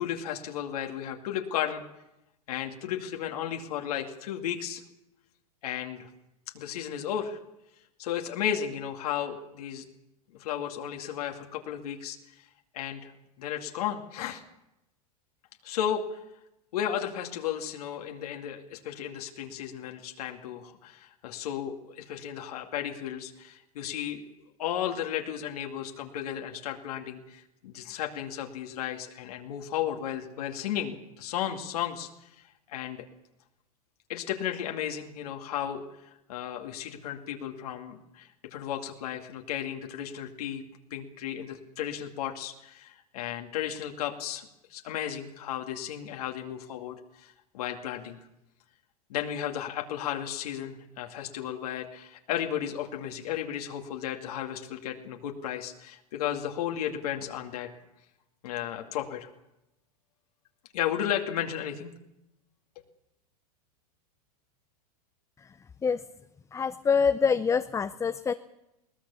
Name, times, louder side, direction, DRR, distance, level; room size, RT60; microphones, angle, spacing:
voice 1, 0.0-1.8 2.5-4.8 5.6-6.1 6.5-7.4 8.0-9.8 10.4-12.5 12.7-13.1 13.4-14.4 15.6-16.2 16.7-24.3 24.6-32.3 32.7-33.0 34.1-35.8 36.3-40.6 40.9-48.2 49.1-57.7 58.4-59.3 60.7-61.9, left 10 dB, 70° left, 3 dB, 2.4 m, -34 dB
voice 2, 66.5-68.3, left 6 dB, 15° left, 11 dB, 0.6 m, -25 dB
21.5 x 18.0 x 7.1 m, 0.91 s
hypercardioid pair, 115°, 20 cm